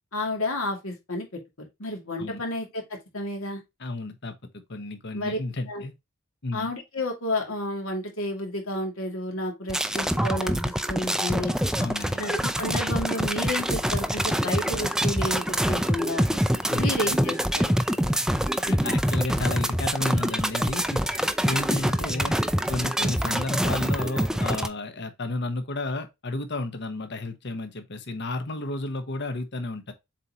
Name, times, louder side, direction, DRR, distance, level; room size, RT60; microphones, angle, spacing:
voice 1, 0.1-3.6 5.1-5.4 5.7-5.8 6.5-11.5 12.2-16.3 16.8-17.7 21.5-21.6 23.0-23.1, left 1 dB, 75° left, 2.6 m, -31 dB
voice 2, 3.8-4.3 4.7-5.9 6.4-6.7 11.8-12.2 16.7-17.2 18.6-21.0 21.4-22.4 22.7-29.9, left 2 dB, 55° left, 1.2 m, -32 dB
sound 1, 9.7-24.7, equal, 5° right, 0.5 m, -25 dB
7.5 x 4.3 x 3.0 m
head